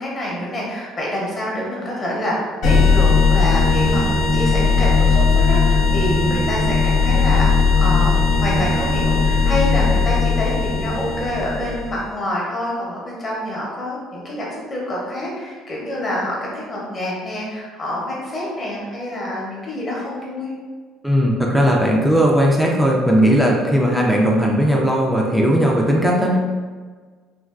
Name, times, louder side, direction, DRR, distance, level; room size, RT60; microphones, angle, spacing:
voice 1, 0.0-7.5 7.8-20.5, left 1 dB, 25° left, -4 dB, 0.7 m, -27 dB
sound 1, 2.6-12.0, left 4 dB, 60° left, 0.6 m, -17 dB
voice 2, 21.0-26.4, equal, ahead, -2 dB, 0.3 m, -17 dB
3.3 x 2.2 x 2.3 m, 1.5 s
cardioid pair, 160°, 0 cm